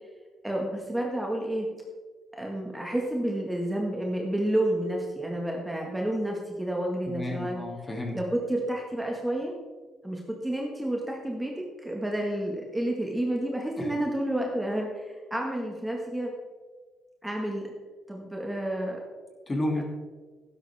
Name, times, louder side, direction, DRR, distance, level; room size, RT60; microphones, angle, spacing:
voice 1, 0.4-1.7 2.4-7.6 8.1-9.5 10.0-16.3 17.2-17.7 18.1-19.0, right 1 dB, 10° right, 0 dB, 1.8 m, -30 dB
voice 2, 7.1-8.2 13.8-13.9 19.5-19.8, left 1 dB, 25° left, 1 dB, 2.7 m, -31 dB
12.5 x 10.5 x 3.6 m, 1.4 s
cardioid pair, 90°, 0 cm